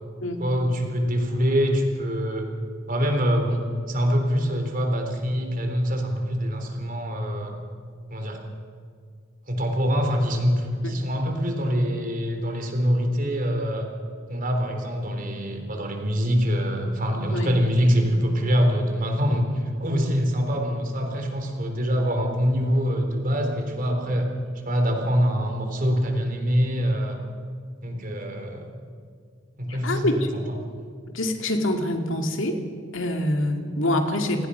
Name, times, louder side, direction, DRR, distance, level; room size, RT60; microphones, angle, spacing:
voice 1, 0.4-2.5 2.9-7.5 8.1-8.4 9.5-13.9 14.3-19.5 19.8-24.3 24.7-27.2 27.8-28.7 29.6-30.2, equal, 40° right, 3 dB, 3.7 m, -24 dB
voice 2, 29.7-30.3 31.1-32.6 32.9-34.5, left 1 dB, 70° left, 5 dB, 2.4 m, -25 dB
29.0 x 18.5 x 5.7 m, 2.2 s
head